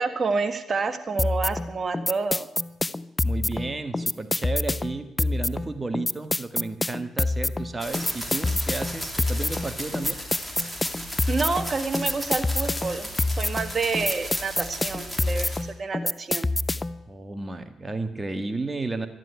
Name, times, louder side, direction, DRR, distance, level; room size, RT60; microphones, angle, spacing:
voice 1, 0.0-2.5 11.3-16.5, right 4 dB, 40° right, 8 dB, 1.6 m, -28 dB
sound 1, 1.2-17.0, left 2 dB, 20° left, 0.5 m, -27 dB
voice 2, 3.2-10.2 17.1-19.1, right 3 dB, 20° right, 8 dB, 1.7 m, -33 dB
sound 2, 7.8-15.6, equal, ahead, 3.1 m, -36 dB
12.5 x 11.0 x 9.5 m, 0.88 s
supercardioid pair, 65°, 0 cm